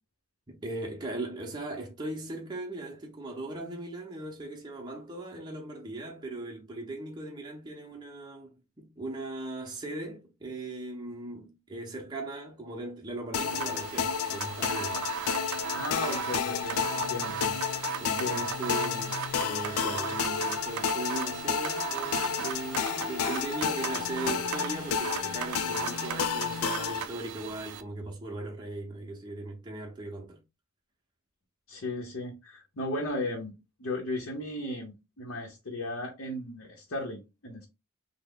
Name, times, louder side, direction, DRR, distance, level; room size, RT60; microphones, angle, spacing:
voice 1, 0.5-15.0 17.4-17.6 18.0-30.4, right 2 dB, 20° right, 0.7 m, -39 dB
sound 1, 13.3-27.1, left 7 dB, 75° left, 0.3 m, -31 dB
sound 2, 13.3-27.8, right 8 dB, 80° right, 0.4 m, -37 dB
voice 2, 15.7-17.4 18.2-18.4 31.7-33.5 33.8-37.7, left 2 dB, 60° left, 0.7 m, -35 dB
3.2 x 2.0 x 3.6 m
head